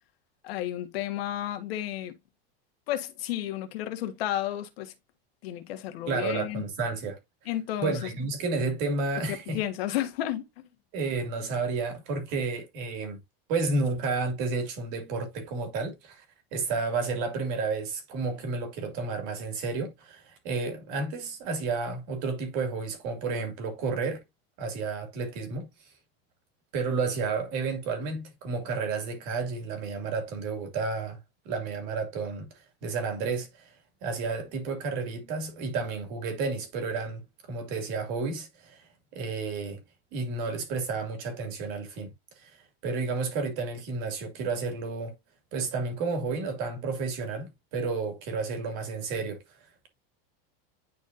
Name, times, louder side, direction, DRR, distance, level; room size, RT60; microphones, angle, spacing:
voice 1, 0.4-2.1 2.9-4.9 5.4-6.6 7.4-8.1 9.3-10.4, left 13 dB, 80° left, 1.6 m, -32 dB
voice 2, 6.1-7.2 7.8-9.6 10.9-13.2 13.5-16.2 16.5-24.2 24.6-25.7 26.7-31.2 31.5-32.5 32.8-33.7 34.0-39.8 40.1-45.1 45.5-49.4, right 4 dB, 45° right, 2.4 m, -31 dB
10.5 x 4.2 x 2.6 m
supercardioid pair, 175°, 30 cm